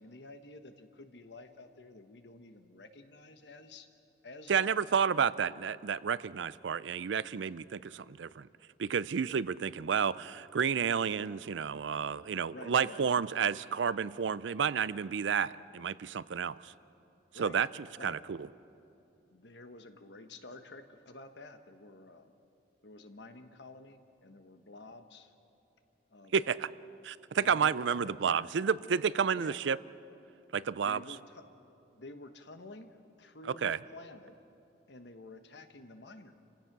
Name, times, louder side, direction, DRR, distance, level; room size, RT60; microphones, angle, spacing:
voice 1, 0.0-3.9 4.2-4.8 12.5-13.0 17.3-17.6 18.0-18.2 19.3-22.3 22.8-25.3 26.1-26.6 27.4-28.4 29.3-29.6 30.8-31.4 31.9-34.3 34.9-36.3, left 2 dB, 70° left, 8 dB, 1.2 m, -50 dB
voice 2, 4.5-8.5 8.8-16.7 17.4-17.7 18.0-18.5 26.3-26.7 27.0-29.8 30.5-31.0 33.6-33.8, right 7 dB, 80° right, 18 dB, 0.4 m, -31 dB
29.0 x 16.5 x 6.0 m, 2.8 s
head